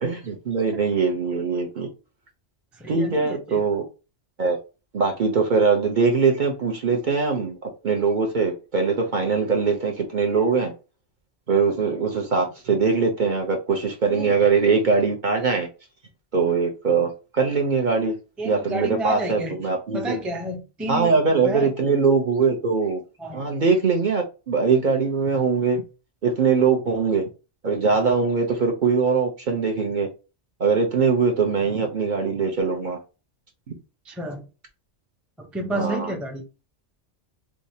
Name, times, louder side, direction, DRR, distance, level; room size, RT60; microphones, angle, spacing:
voice 1, 0.0-1.9 2.9-3.8 4.4-4.6 4.9-10.7 11.5-15.7 16.3-18.1 18.4-20.2 20.9-23.0 23.3-25.8 26.2-27.2 27.6-30.1 30.6-33.0 35.7-36.1, right 5 dB, 50° right, 0.7 m, -22 dB
voice 2, 2.8-3.6 14.1-14.3 18.4-19.6 19.9-21.2 21.4-21.7 23.2-23.4 34.1-34.4 35.4-36.4, right 1 dB, ahead, 0.5 m, -30 dB
4.7 x 2.0 x 2.7 m
omnidirectional pair, 1.2 m